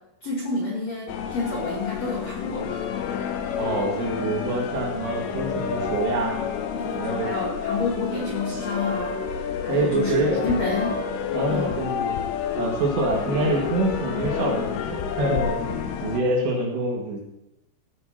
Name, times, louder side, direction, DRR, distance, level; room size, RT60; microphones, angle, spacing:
voice 1, 0.2-2.8 6.7-11.0 11.5-11.7, left 3 dB, 65° left, -3 dB, 1.7 m, -29 dB
sound 1, 1.1-16.2, left 7 dB, 85° left, 2.3 m, -29 dB
voice 2, 3.6-6.3 6.9-7.3 9.7-10.4 11.3-12.2 12.6-17.2, right 2 dB, 65° right, -1 dB, 3.7 m, -26 dB
16.0 x 9.3 x 2.9 m, 0.90 s
omnidirectional pair, 5.6 m